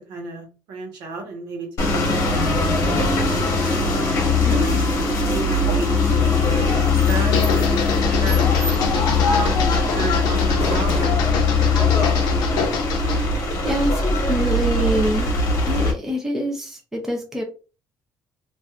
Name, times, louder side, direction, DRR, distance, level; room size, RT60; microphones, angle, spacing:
voice 1, 0.1-3.0 4.4-4.8 5.3-6.6 6.9-12.3, right 3 dB, 80° right, 1 dB, 1.1 m, -33 dB
sound 1, 1.8-15.9, left 3 dB, 45° left, 1.0 m, -20 dB
voice 2, 4.4-4.8 13.1-15.3 15.7-17.4, equal, 5° right, 1 dB, 0.5 m, -25 dB
sound 2, 7.2-13.3, left 5 dB, 75° left, 0.6 m, -27 dB
3.1 x 2.5 x 2.3 m, 0.34 s
cardioid pair, 170°, 7 cm